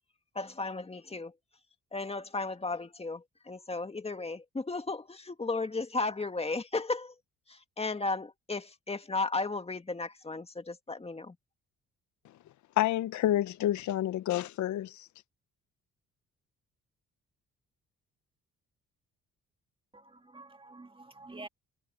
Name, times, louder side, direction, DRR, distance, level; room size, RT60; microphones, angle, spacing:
voice 1, 0.4-1.3 1.9-7.1 7.5-11.4, left 3 dB, 20° left, 1.9 m, -35 dB
voice 2, 12.8-15.1, left 13 dB, 70° left, 0.8 m, -29 dB
voice 3, 19.9-21.5, right 2 dB, 15° right, 2.0 m, -48 dB
cardioid pair, 90°, 30 cm